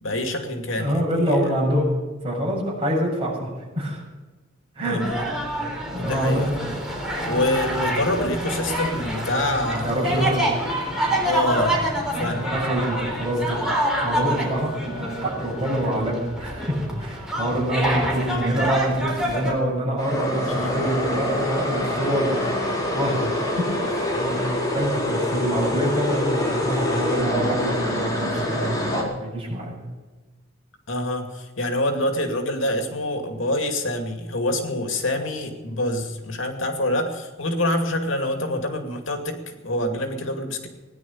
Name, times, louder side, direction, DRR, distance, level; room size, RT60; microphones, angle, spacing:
voice 1, 0.0-1.1 4.8-5.2 5.6-5.7 6.0-6.7 7.3-10.3 11.2-12.5 20.5-20.8 24.1-24.6 30.9-40.7, left 1 dB, 75° left, 5 dB, 2.4 m, -26 dB
voice 2, 0.8-1.9 2.2-4.0 4.8-5.0 5.9-6.6 9.7-10.5 12.2-13.6 14.0-22.4 22.9-24.4 24.7-29.8, equal, 30° right, -3 dB, 7.0 m, -26 dB
sound 1, 5.0-19.5, right 1 dB, 5° right, 3.8 m, -27 dB
sound 2, 6.9-16.8, right 1 dB, 35° left, 4.0 m, -41 dB
sound 3, 20.0-29.0, left 1 dB, 20° left, 4.1 m, -25 dB
18.5 x 10.5 x 7.3 m, 1.3 s
head